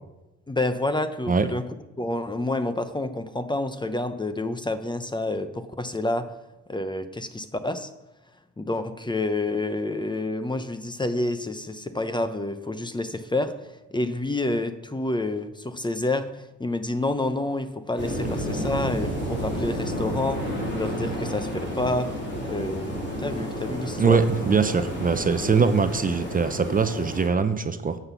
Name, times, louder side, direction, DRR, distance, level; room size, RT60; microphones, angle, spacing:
voice 1, 0.5-1.6 2.0-6.3 6.7-7.9 8.6-24.2, left 2 dB, 15° left, 10 dB, 0.7 m, -28 dB
sound 1, 18.0-27.3, equal, 35° left, 3.4 m, -31 dB
voice 2, 24.0-28.0, right 5 dB, 30° right, 9 dB, 0.7 m, -22 dB
9.5 x 5.9 x 7.0 m, 1.0 s
cardioid pair, 90°, 30 cm